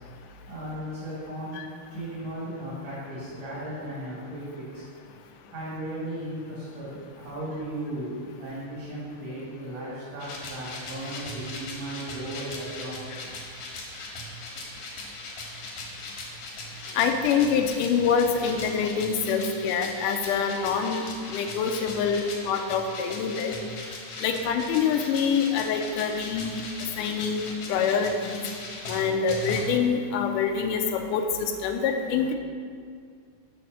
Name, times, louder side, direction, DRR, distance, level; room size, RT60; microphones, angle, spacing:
voice 1, 0.5-1.6 1.9-4.9 5.5-13.3, right 1 dB, 75° right, -10 dB, 3.8 m, -36 dB
sound 1, 10.2-29.6, left 2 dB, 65° left, 2.4 m, -39 dB
voice 2, 17.0-21.0 21.3-23.5 24.2-26.6 27.0-28.4 28.9-32.4, left 6 dB, 85° left, 5 dB, 2.2 m, -25 dB
6.8 x 4.3 x 6.5 m, 2.2 s
omnidirectional pair, 3.6 m